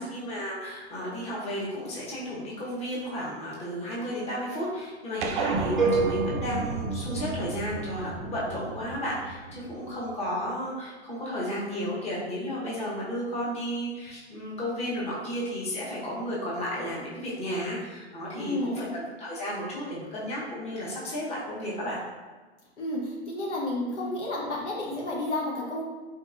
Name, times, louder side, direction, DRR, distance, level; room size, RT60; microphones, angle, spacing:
voice 1, 0.0-22.0, equal, 20° left, -7 dB, 0.9 m, -33 dB
sound 1, 5.2-9.9, right 3 dB, 50° right, 0.4 m, -32 dB
sound 2, 5.8-7.8, right 4 dB, ahead, 0.5 m, -29 dB
voice 2, 18.4-18.8 22.8-25.8, left 1 dB, 90° left, -3 dB, 1.0 m, -31 dB
3.5 x 2.8 x 2.4 m, 1.3 s
hypercardioid pair, 120°, 34 cm